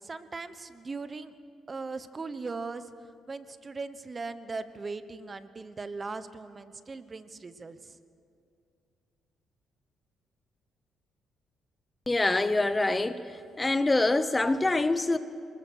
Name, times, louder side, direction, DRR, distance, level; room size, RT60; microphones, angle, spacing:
voice 1, 0.0-1.3 1.7-2.9 3.3-8.0, right 4 dB, 30° right, 1.1 m, -39 dB
voice 2, 12.1-15.2, left 2 dB, 20° left, 0.8 m, -25 dB
25.5 x 21.0 x 6.5 m
cardioid pair, 90°, 0 cm